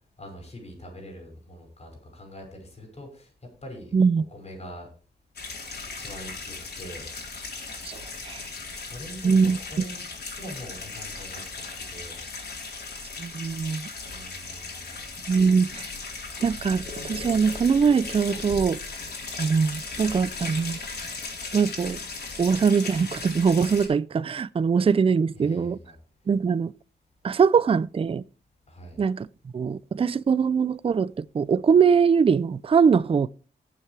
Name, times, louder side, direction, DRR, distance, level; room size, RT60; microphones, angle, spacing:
voice 1, 0.2-3.3 3.6-3.9 4.3-4.9 5.9-7.0 8.7-12.2 12.5-13.0 14.0-15.1 25.3-26.0 28.7-29.0, equal, 40° left, 5.5 m, -43 dB
voice 2, 3.9-4.2 7.8-8.4 9.2-9.6 13.2-13.9 15.3-15.9 16.4-18.8 19.4-20.8 21.5-22.0 22.4-25.8 26.3-26.7 27.2-28.2 29.0-29.3 29.5-33.3, right 6 dB, 35° right, 0.4 m, -22 dB
sound 1, 5.4-23.9, left 4 dB, 75° left, 3.8 m, -37 dB
18.0 x 7.4 x 3.3 m
wide cardioid pair, 110°, 17 cm